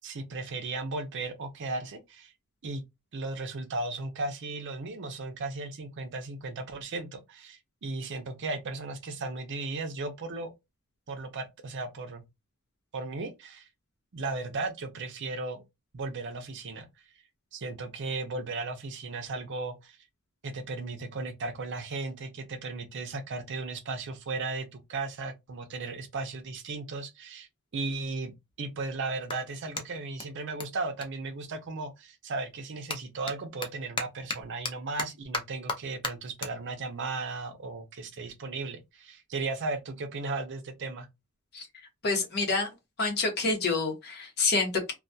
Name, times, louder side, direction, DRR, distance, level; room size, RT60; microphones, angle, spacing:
voice 1, 0.0-2.3 2.6-2.8 3.1-10.5 11.1-12.2 12.9-13.7 14.1-15.6 15.9-16.9 17.5-20.0 20.4-27.5 27.7-28.3 28.6-41.1, right 3 dB, 55° right, 0.5 m, -36 dB
Clapping, 27.2-27.3 27.9-32.0 32.3-38.9, left 3 dB, 20° left, 0.5 m, -40 dB
voice 2, 42.0-42.7 43.0-44.9, left 3 dB, 50° left, 0.9 m, -27 dB
2.3 x 2.2 x 2.6 m
head